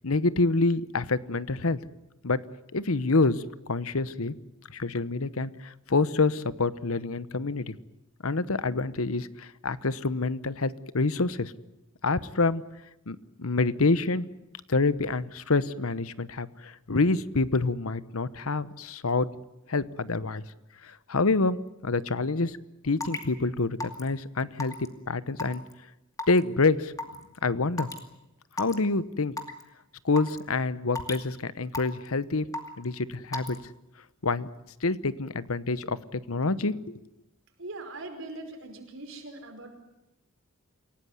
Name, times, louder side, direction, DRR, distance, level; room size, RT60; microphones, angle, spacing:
voice 1, 0.0-1.8 2.2-2.4 2.7-4.3 4.7-7.7 8.2-11.5 12.0-12.6 13.1-14.3 14.7-19.3 19.7-20.4 20.8-22.6 22.8-24.8 25.1-25.6 26.3-26.9 27.4-27.9 28.6-29.3 30.0-32.5 32.8-33.6 34.2-34.5 34.8-37.0, left 3 dB, 75° left, 16 dB, 1.0 m, -27 dB
Raindrop / Water tap faucet / Drip, 23.0-23.2 23.8-24.1 24.6-24.9 25.4-25.7 26.2-26.4 27.0-27.1 27.8-28.0 28.5-28.7 29.4-29.6 30.2-30.4 30.9-31.2 31.7-32.1 32.5-32.8 33.3-33.6, left 2 dB, 15° left, 2.4 m, -33 dB
voice 2, 37.6-39.7, right 2 dB, 65° right, 5 dB, 5.2 m, -41 dB
28.0 x 17.5 x 9.5 m, 0.91 s
head